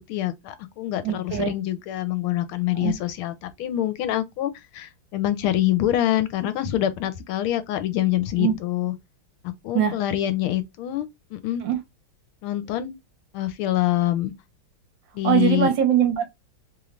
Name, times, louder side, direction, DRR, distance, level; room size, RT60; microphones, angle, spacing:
voice 1, 0.1-8.9 9.6-11.6 12.4-12.9 13.3-14.3 15.1-15.7, left 13 dB, 80° left, 1.5 m, -25 dB
voice 2, 1.0-1.5 2.8-2.9 8.4-8.6 9.7-9.9 11.6-11.8 15.2-16.3, right 9 dB, 65° right, 1.5 m, -21 dB
3.5 x 3.1 x 2.4 m
omnidirectional pair, 2.3 m